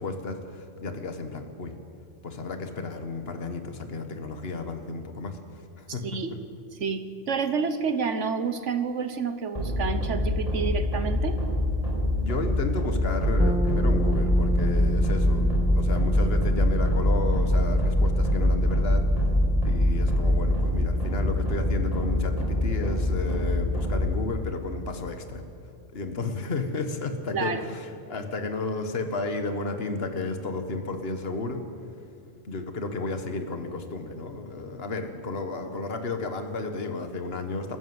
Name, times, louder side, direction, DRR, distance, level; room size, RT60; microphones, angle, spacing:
voice 1, 0.0-1.7 2.2-5.4 5.8-6.1 12.2-19.0 19.6-25.4 25.9-31.6 32.4-37.8, left 3 dB, 50° left, 7 dB, 1.8 m, -32 dB
voice 2, 5.9-6.3 6.8-11.4 27.3-27.7, right 5 dB, 70° right, 9 dB, 1.5 m, -29 dB
sound 1, 9.5-24.2, left 1 dB, 30° left, 5.4 m, -24 dB
sound 2, 13.4-23.2, right 2 dB, 5° right, 0.6 m, -35 dB
29.0 x 13.5 x 8.0 m, 2.5 s
omnidirectional pair, 1.3 m